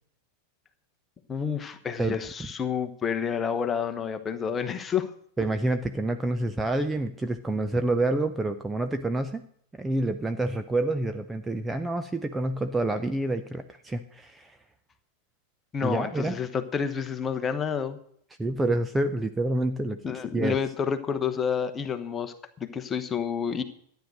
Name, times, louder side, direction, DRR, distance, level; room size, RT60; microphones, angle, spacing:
voice 1, 1.3-5.1 15.7-18.0 20.0-23.6, left 7 dB, 20° left, 9 dB, 1.2 m, -29 dB
voice 2, 5.4-9.4 9.8-14.6 15.8-16.4 18.4-20.0 20.3-20.6, right 2 dB, 10° right, 8 dB, 0.7 m, -28 dB
13.0 x 9.2 x 6.5 m, 0.66 s
figure-of-eight pair, 90°, 0 cm